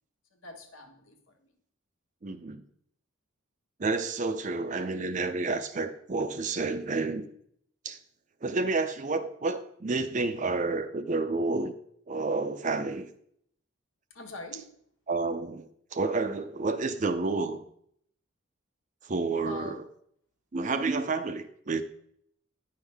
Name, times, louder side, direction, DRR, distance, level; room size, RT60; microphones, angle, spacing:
voice 1, 0.3-1.5 14.1-14.7 19.4-19.9, left 3 dB, 80° left, 3 dB, 1.3 m, -44 dB
voice 2, 2.2-2.6 3.8-7.2 7.8-8.0 8.4-11.7 12.1-13.1 15.1-15.7 15.9-17.6 19.0-19.8 20.5-21.8, right 3 dB, 35° right, 10 dB, 0.5 m, -30 dB
10.0 x 5.6 x 3.4 m, 0.68 s
head